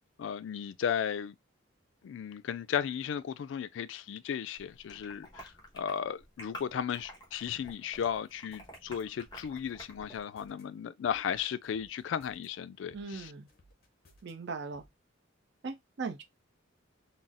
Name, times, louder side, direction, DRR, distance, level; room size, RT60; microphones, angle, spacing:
voice 1, 0.2-1.4 2.0-13.3, left 8 dB, 70° left, 0.3 m, -35 dB
sound 1, 4.6-10.2, left 1 dB, 20° left, 1.1 m, -50 dB
sound 2, 7.6-8.8 9.2-10.6 11.0-12.5 12.9-14.3 14.7-14.9, left 1 dB, 50° left, 0.7 m, -62 dB
voice 2, 12.9-13.5 14.2-14.8 15.6-16.2, right 4 dB, 60° right, 0.5 m, -39 dB
4.0 x 2.0 x 2.4 m
head